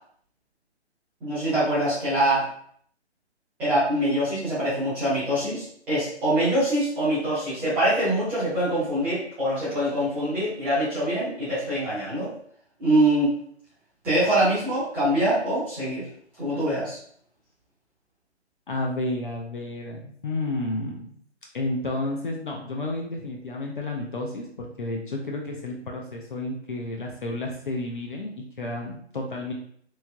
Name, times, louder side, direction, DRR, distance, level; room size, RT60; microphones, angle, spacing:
voice 1, 1.2-2.5 3.6-12.3 12.8-13.3 14.0-16.0 16.4-17.0, right 1 dB, 5° right, -14 dB, 0.7 m, -24 dB
voice 2, 18.7-21.1 21.5-29.5, left 2 dB, 50° left, 0 dB, 0.5 m, -31 dB
3.1 x 2.7 x 2.3 m, 0.62 s
figure-of-eight pair, 145°, 34 cm